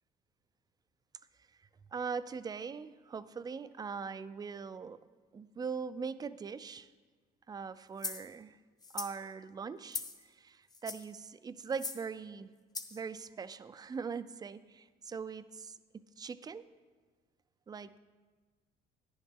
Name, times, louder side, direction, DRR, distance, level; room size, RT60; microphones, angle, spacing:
voice 1, 1.9-5.0 5.3-6.9 7.5-8.6 8.9-12.5 12.9-16.6 17.7-18.0, right 5 dB, 25° right, 14 dB, 0.4 m, -41 dB
sound 1, 8.0-8.3 8.8-9.2 9.9-10.2 10.7-11.1 11.7-12.0 12.7-13.0, left 3 dB, 25° left, 0.8 m, -40 dB
10.5 x 10.0 x 3.6 m, 1.5 s
cardioid pair, 110°, 17 cm